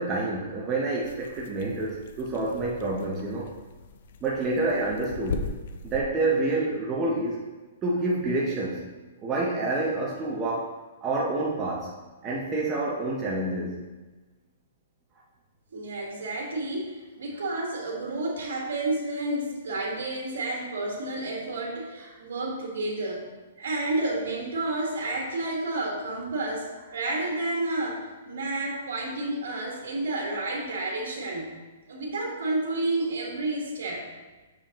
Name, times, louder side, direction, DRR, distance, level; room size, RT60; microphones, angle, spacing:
voice 1, 0.0-3.5 4.2-5.4 5.8-7.4 7.8-8.8 9.2-10.7 11.0-11.9 12.2-13.8, right 2 dB, 15° right, -4 dB, 0.6 m, -28 dB
sound 1, 1.0-6.0, left 4 dB, 50° left, 0.4 m, -38 dB
voice 2, 15.7-23.2 23.6-31.5 31.8-34.0, right 2 dB, 85° right, -1 dB, 1.5 m, -30 dB
6.9 x 4.9 x 2.9 m, 1.2 s
hypercardioid pair, 170°, 0 cm